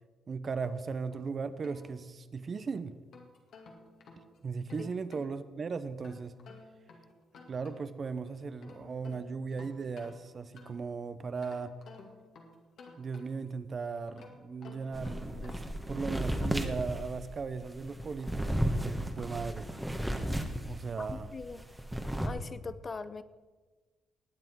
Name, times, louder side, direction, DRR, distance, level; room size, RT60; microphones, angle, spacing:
voice 1, 0.3-2.9 4.4-6.3 7.5-11.7 13.0-15.6 15.9-19.7 20.6-21.3, right 5 dB, 45° right, 12 dB, 0.8 m, -37 dB
sound 1, 1.1-2.5 2.9-5.3 6.0-8.1 8.4-10.9 11.4-13.6 14.1-15.8, left 4 dB, 70° left, 2.4 m, -54 dB
sound 2, 14.9-21.2 21.5-22.3, right 1 dB, 5° right, 1.3 m, -34 dB
voice 2, 21.0-21.6 22.2-23.2, left 4 dB, 35° left, 14 dB, 0.6 m, -41 dB
20.0 x 7.8 x 4.6 m, 1.3 s
cardioid pair, 90°, 0 cm